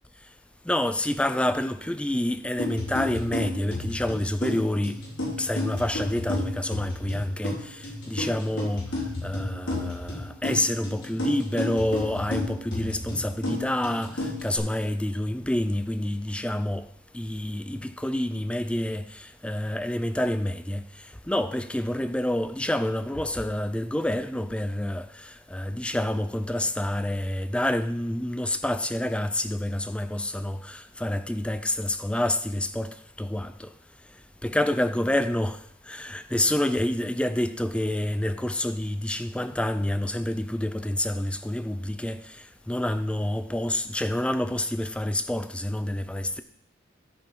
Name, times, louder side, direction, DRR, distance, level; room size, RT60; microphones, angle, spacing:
voice 1, 0.7-5.0 5.4-8.9 9.2-16.9 17.1-20.8 21.3-33.7 34.4-35.6 35.9-42.2 42.7-46.4, left 1 dB, 5° left, 0.4 m, -28 dB
sound 1, 2.6-14.6, left 2 dB, 80° left, 4.4 m, -33 dB
13.5 x 5.2 x 5.4 m
head